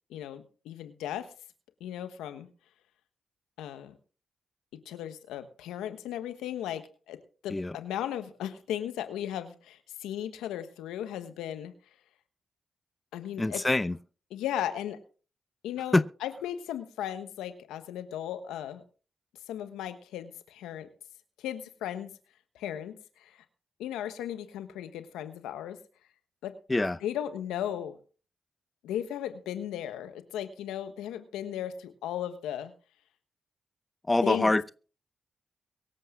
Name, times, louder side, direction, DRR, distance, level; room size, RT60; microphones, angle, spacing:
voice 1, 0.1-1.3 1.8-2.5 3.6-4.0 4.7-11.7 13.1-13.6 14.3-15.0 15.6-18.8 19.5-20.9 21.4-22.1 22.5-23.4 23.8-25.8 26.4-26.6 27.0-28.0 28.8-32.7 34.2-34.6, left 11 dB, 90° left, 1.2 m, -36 dB
voice 2, 13.4-14.0 15.9-16.0 26.7-27.0 34.1-34.7, left 2 dB, 25° left, 0.7 m, -25 dB
23.5 x 7.9 x 3.7 m
supercardioid pair, 45°, 0 cm